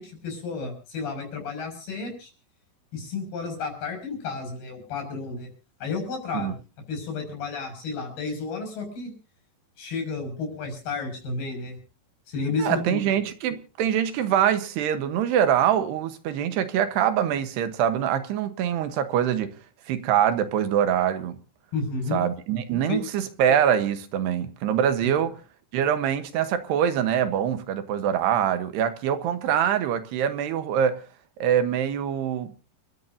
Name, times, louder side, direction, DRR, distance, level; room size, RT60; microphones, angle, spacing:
voice 1, 0.0-2.3 2.9-5.5 5.8-6.5 6.9-9.1 9.8-11.8 12.3-13.1 21.7-22.2 22.9-23.0, left 4 dB, 65° left, 8.3 m, -32 dB
voice 2, 12.6-19.5 19.9-21.4 22.1-25.3 25.7-30.9 31.4-32.5, right 9 dB, 80° right, 3.2 m, -24 dB
29.0 x 13.5 x 2.7 m
omnidirectional pair, 4.8 m